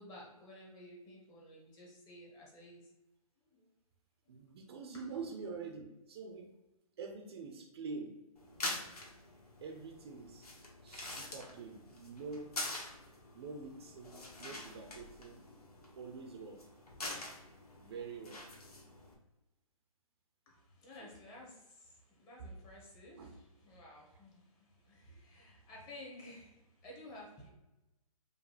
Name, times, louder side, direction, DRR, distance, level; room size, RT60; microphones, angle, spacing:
voice 1, 0.0-2.9 3.5-3.7 20.5-27.5, left 1 dB, 20° left, -3 dB, 1.1 m, -54 dB
voice 2, 4.3-6.6 7.0-8.2 9.6-10.5 10.8-12.5 13.3-15.4 16.0-16.7 17.8-18.5 21.0-21.1 23.2-23.4, right 4 dB, 45° right, 3 dB, 0.5 m, -46 dB
sound 1, 8.4-19.1, left 2 dB, 85° left, 1.2 m, -46 dB
5.0 x 2.2 x 3.2 m, 0.98 s
hypercardioid pair, 140°, 19 cm